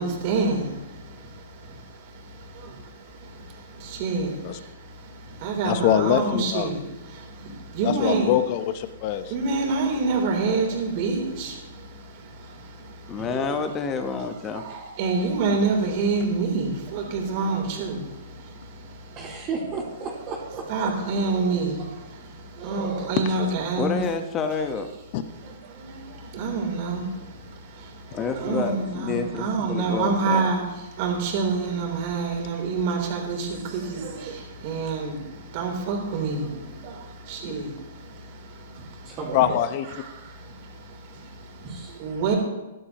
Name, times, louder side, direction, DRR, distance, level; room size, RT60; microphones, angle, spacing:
voice 1, 0.0-6.8 7.1-8.3 9.3-13.5 14.5-19.2 20.7-24.0 25.4-30.6 31.0-39.1 40.1-42.3, right 4 dB, 45° right, 0 dB, 3.9 m, -28 dB
voice 2, 5.6-6.7 7.8-9.3 25.1-25.2 39.3-39.8, left 11 dB, 45° left, 10 dB, 1.0 m, -23 dB
voice 3, 13.1-14.6 23.8-24.9 28.1-30.5, left 5 dB, 25° left, 7 dB, 1.3 m, -28 dB
voice 4, 19.1-20.9 22.6-23.2 39.0-39.6 41.6-41.9, right 4 dB, 30° right, -9 dB, 3.9 m, -33 dB
16.0 x 11.5 x 3.1 m, 1.1 s
hypercardioid pair, 130°, 0 cm